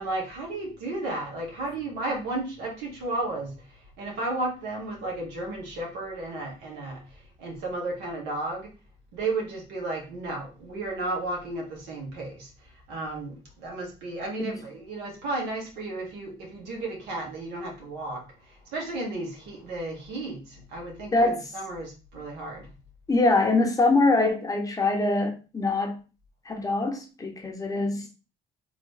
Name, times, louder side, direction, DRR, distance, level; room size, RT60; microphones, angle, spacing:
voice 1, 0.0-3.5 4.0-7.0 7.4-8.7 9.1-12.5 12.9-18.2 18.7-22.7, right 2 dB, 90° right, 1.7 m, -33 dB
voice 2, 21.1-21.4 23.1-26.0 26.5-28.1, left 2 dB, 20° left, 0.9 m, -23 dB
3.6 x 3.1 x 3.3 m
cardioid pair, 110°, 17 cm